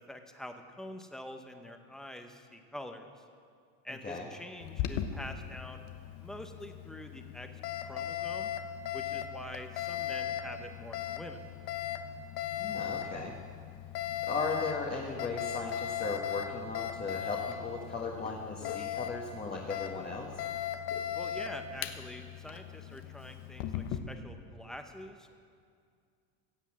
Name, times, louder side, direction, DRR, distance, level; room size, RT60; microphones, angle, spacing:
voice 1, 0.0-3.1 3.8-5.8 6.2-7.5 7.8-8.5 8.9-11.5 21.1-25.4, left 1 dB, ahead, 5 dB, 0.9 m, -46 dB
Alarm, 4.6-24.0, left 10 dB, 60° left, 1.1 m, -38 dB
voice 2, 12.5-13.3 14.3-20.4, left 3 dB, 20° left, -2 dB, 1.4 m, -37 dB
16.0 x 8.1 x 7.5 m, 2.2 s
supercardioid pair, 125°, 44 cm